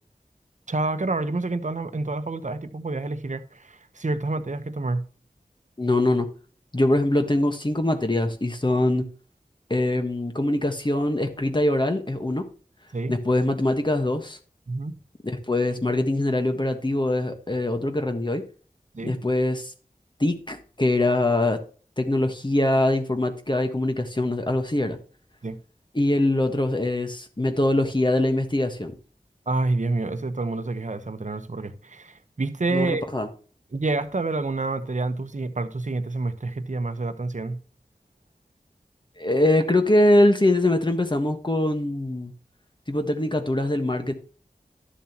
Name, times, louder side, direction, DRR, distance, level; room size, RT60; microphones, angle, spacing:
voice 1, 0.7-5.0 12.9-13.1 14.7-15.0 18.9-19.2 25.4-25.6 29.5-33.0 33.7-37.6, right 2 dB, 55° right, 1.0 m, -28 dB
voice 2, 5.8-6.3 6.7-9.1 9.7-12.4 13.1-14.4 15.2-18.4 19.0-19.7 20.2-21.6 22.0-25.0 25.9-28.9 32.7-33.3 39.2-42.3 42.9-44.1, left 1 dB, 30° left, 1.4 m, -23 dB
12.0 x 7.2 x 3.0 m
wide cardioid pair, 55°, 15 cm